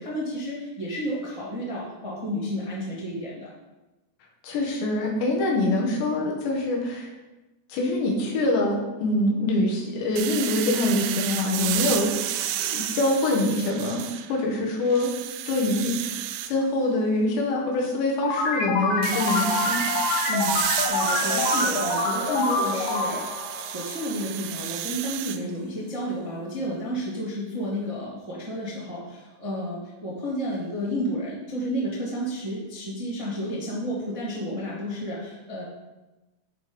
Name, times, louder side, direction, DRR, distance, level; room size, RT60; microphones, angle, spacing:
voice 1, 0.0-3.5 20.3-23.3 23.7-35.6, equal, 25° right, -6 dB, 0.7 m, -31 dB
voice 2, 4.4-7.1 7.7-12.1 12.6-15.1 15.5-16.2 16.5-19.8, left 2 dB, 90° left, -1 dB, 3.9 m, -25 dB
sound 1, 10.2-14.4 14.8-16.5 19.0-25.4, right 12 dB, 90° right, 2.8 m, -31 dB
sound 2, 18.2-24.5, left 3 dB, 70° left, 2.9 m, -26 dB
11.0 x 5.2 x 5.4 m, 1.1 s
omnidirectional pair, 4.9 m